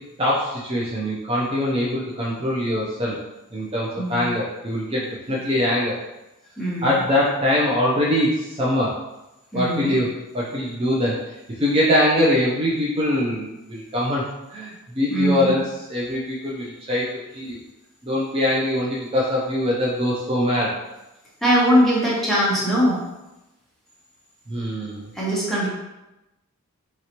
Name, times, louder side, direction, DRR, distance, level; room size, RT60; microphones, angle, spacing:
voice 1, 0.2-3.2 3.5-6.0 6.8-8.9 9.5-10.1 10.3-11.1 11.6-14.2 14.5-17.6 18.0-20.7 24.5-25.1, left 1 dB, 25° right, -5 dB, 0.5 m, -23 dB
voice 2, 4.0-4.3 5.3-5.4 6.6-6.9 9.5-9.9 15.1-15.5 21.4-23.0 25.1-25.7, equal, ahead, -7 dB, 0.8 m, -21 dB
3.0 x 2.8 x 2.9 m, 0.99 s
head